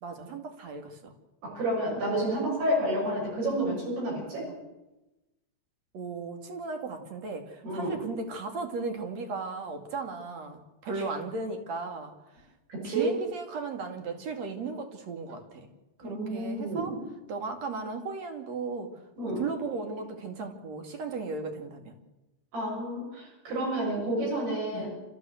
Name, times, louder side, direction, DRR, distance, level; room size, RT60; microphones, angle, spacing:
voice 1, 0.0-1.1 4.5-4.6 5.9-12.1 12.8-15.7 16.0-16.9 17.3-18.9 19.2-22.0 24.7-24.9, right 4 dB, 45° right, 5 dB, 2.9 m, -36 dB
voice 2, 1.4-4.5 7.6-8.0 12.7-13.1 16.0-17.0 19.2-19.5 22.5-24.9, right 1 dB, 60° right, -4 dB, 9.1 m, -30 dB
28.5 x 14.5 x 8.1 m, 1.0 s
omnidirectional pair, 5.3 m